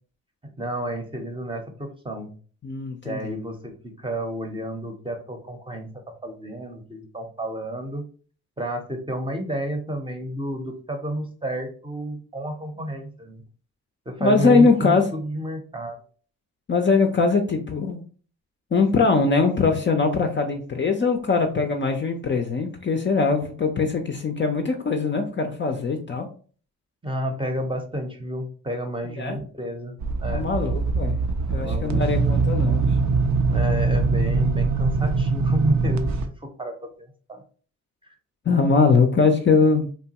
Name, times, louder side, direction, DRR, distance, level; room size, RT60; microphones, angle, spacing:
voice 1, 0.6-2.3 3.0-8.1 8.6-13.4 14.1-16.0 27.0-30.0 30.2-30.5 31.5-32.1 33.3-37.4, right 1 dB, 15° right, 4 dB, 0.7 m, -31 dB
voice 2, 2.6-3.3 14.2-15.1 16.7-18.0 18.7-26.3 29.2-29.4 30.3-31.2 31.5-32.9 38.5-39.9, left 4 dB, 30° left, 4 dB, 0.5 m, -21 dB
sound 1, 30.0-36.3, right 4 dB, 50° right, 0.5 m, -22 dB
2.9 x 2.2 x 2.8 m, 0.42 s
supercardioid pair, 50°, 36 cm